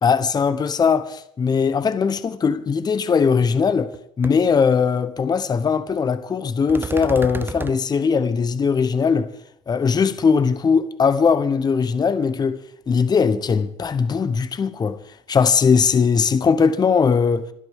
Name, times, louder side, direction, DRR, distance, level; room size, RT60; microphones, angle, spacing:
voice 1, 0.0-9.3 9.7-12.6 12.9-17.5, left 5 dB, 30° left, 1.1 m, -20 dB
sound 1, 3.2-3.3 3.7-4.0 4.2-4.3 6.7-7.8, right 4 dB, 15° right, 0.6 m, -31 dB
27.0 x 12.0 x 3.7 m
hypercardioid pair, 80°, 14 cm